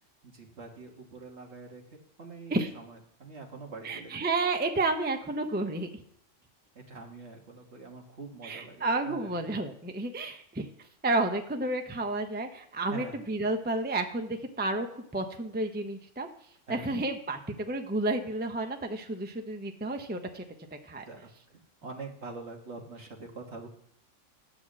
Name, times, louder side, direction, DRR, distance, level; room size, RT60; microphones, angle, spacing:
voice 1, 0.2-4.1 6.7-9.5 12.9-13.2 16.7-16.9 21.1-23.7, right 3 dB, 60° right, 1 dB, 1.9 m, -45 dB
voice 2, 3.8-5.9 8.4-10.7 11.0-16.3 16.7-20.4 20.8-21.0, right 2 dB, 10° right, 5 dB, 0.6 m, -31 dB
10.5 x 4.6 x 7.5 m, 0.69 s
omnidirectional pair, 1.3 m